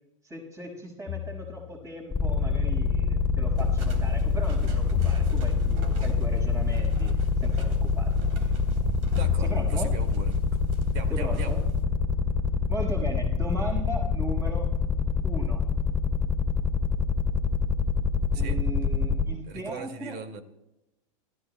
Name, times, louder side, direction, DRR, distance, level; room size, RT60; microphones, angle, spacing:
voice 1, 0.2-8.1 8.4-8.5 9.4-9.9 11.1-11.6 12.7-14.7 15.2-15.6 18.3-20.2, right 1 dB, 15° right, 1 dB, 5.8 m, -37 dB
sound 1, 1.1-1.9 5.0-6.0 9.2-10.1, left 15 dB, 35° left, 0.6 m, -32 dB
sound 2, 2.1-19.2, left 5 dB, 15° left, 2.8 m, -25 dB
sound 3, 3.6-11.8, equal, 70° right, 3.4 m, -42 dB
voice 2, 9.1-10.6 10.9-11.6 18.3-18.6 19.5-20.4, right 5 dB, 55° right, 7 dB, 2.2 m, -39 dB
28.0 x 14.5 x 2.3 m, 0.94 s
hypercardioid pair, 110°, 17 cm